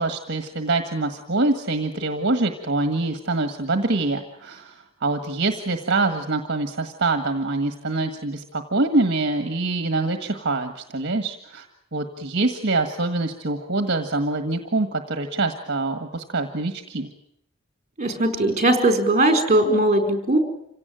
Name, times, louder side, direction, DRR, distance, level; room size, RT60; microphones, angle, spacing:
voice 1, 0.0-11.7 11.9-17.1, right 2 dB, 55° right, 7 dB, 1.7 m, -25 dB
voice 2, 18.0-20.4, right 1 dB, 35° right, 6 dB, 4.5 m, -19 dB
27.0 x 17.5 x 9.1 m, 0.75 s
head